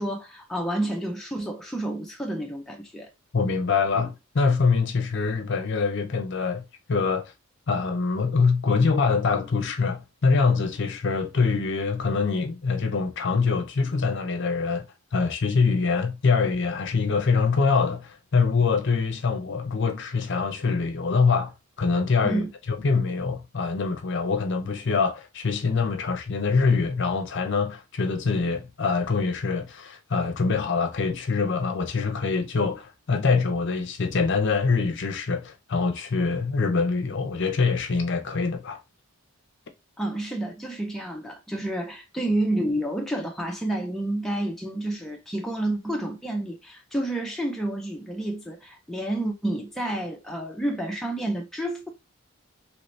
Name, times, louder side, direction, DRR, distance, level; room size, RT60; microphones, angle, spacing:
voice 1, 0.0-3.1 22.2-22.5 40.0-51.9, right 1 dB, ahead, 0.4 m, -29 dB
voice 2, 3.3-7.3 7.7-14.9 15.1-22.4 22.8-38.8, left 4 dB, 50° left, 0.6 m, -24 dB
3.0 x 2.7 x 3.1 m
head